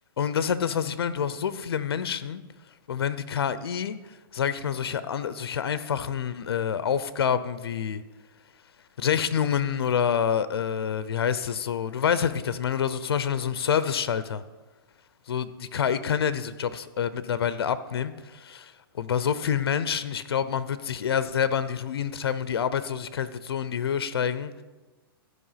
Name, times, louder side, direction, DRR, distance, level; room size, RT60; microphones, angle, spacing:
voice 1, 0.2-2.4 2.9-8.0 9.0-14.4 15.3-24.6, left 8 dB, 90° left, 14 dB, 0.7 m, -27 dB
14.0 x 5.5 x 5.7 m, 1.2 s
hypercardioid pair, 155°, 13 cm